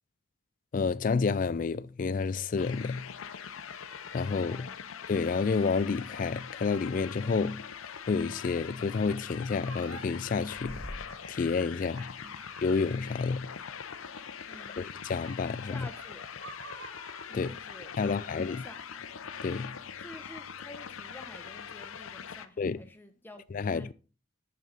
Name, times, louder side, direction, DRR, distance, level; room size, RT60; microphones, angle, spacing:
voice 1, 0.7-3.1 4.1-4.7 5.1-7.6 8.1-10.8 11.3-12.2 12.6-13.5 14.8-15.9 17.3-17.5 18.0-18.6 19.4-19.8 22.6-22.8 23.5-23.9, left 4 dB, 40° left, 0.3 m, -30 dB
sound 1, 2.6-22.5, left 7 dB, 75° left, 0.7 m, -43 dB
voice 2, 4.5-4.8 12.2-12.4 14.5-14.8 15.7-16.3 17.3-19.0 20.0-23.9, left 1 dB, 10° left, 0.9 m, -50 dB
sound 2, 9.6-10.0 10.7-13.5 14.1-17.3, right 3 dB, 65° right, 1.5 m, -51 dB
sound 3, 10.5-11.9 12.2-12.3 12.5-13.3, equal, 25° right, 5.5 m, -47 dB
9.2 x 6.9 x 4.0 m
head